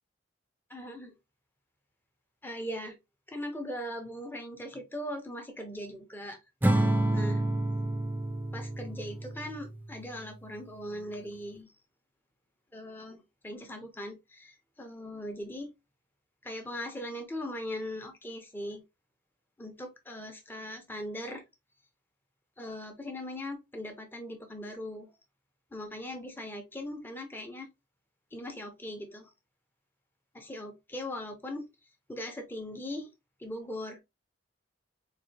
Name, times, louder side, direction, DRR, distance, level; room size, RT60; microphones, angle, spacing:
voice 1, 0.7-1.1 2.4-3.0 3.3-6.4 7.1-7.4 8.5-11.7 12.7-15.7 16.4-18.8 19.6-21.4 22.6-25.1 25.7-27.7 28.3-29.3 30.3-31.7 32.1-33.1 33.4-34.0, left 1 dB, 10° left, 0.7 m, -40 dB
Acoustic guitar / Strum, 6.6-10.0, right 1 dB, 10° right, 0.3 m, -29 dB
4.0 x 2.7 x 2.7 m
head